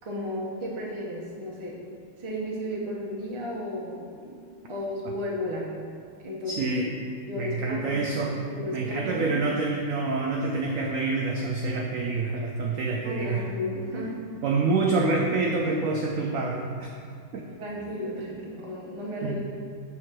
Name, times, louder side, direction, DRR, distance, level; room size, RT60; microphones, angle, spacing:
voice 1, 0.0-1.8 2.2-5.7 6.2-6.7 7.2-8.0 8.5-9.3 13.0-14.2 17.6-19.4, left 1 dB, 25° right, -4 dB, 0.6 m, -34 dB
voice 2, 6.5-7.1 7.4-8.4 8.7-13.4 14.4-16.9 17.3-17.5 19.2-19.4, right 3 dB, 75° right, -1 dB, 0.7 m, -27 dB
6.6 x 4.2 x 4.3 m, 2.3 s
omnidirectional pair, 2.0 m